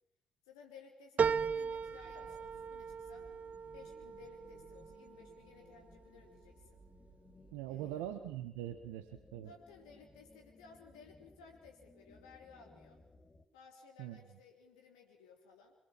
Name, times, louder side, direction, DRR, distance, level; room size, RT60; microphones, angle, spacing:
voice 1, 0.5-6.8 7.7-8.1 9.4-13.0 13.5-15.7, left 5 dB, 85° left, 1 dB, 3.4 m, -58 dB
sound 1, 1.2-5.9 6.4-7.1 7.5-7.6, right 6 dB, 50° right, 1.0 m, -37 dB
sound 2, 1.5-13.5, left 3 dB, 30° left, 3.8 m, -62 dB
voice 2, 7.5-9.5 14.0-14.2, right 12 dB, 80° right, 9 dB, 1.5 m, -42 dB
26.5 x 24.0 x 7.4 m, 0.78 s
hypercardioid pair, 45°, 3 cm